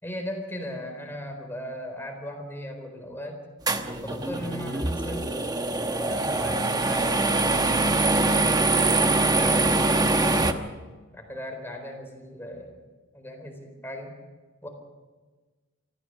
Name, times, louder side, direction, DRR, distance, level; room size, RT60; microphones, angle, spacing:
voice 1, 0.0-3.4 4.0-5.3 6.0-10.7 11.1-12.8 13.1-14.1 14.6-14.7, equal, 10° left, 3 dB, 4.2 m, -38 dB
sound 1, 3.7-10.5, right 2 dB, 20° right, 1.0 m, -23 dB
27.0 x 14.5 x 6.7 m, 1.3 s
head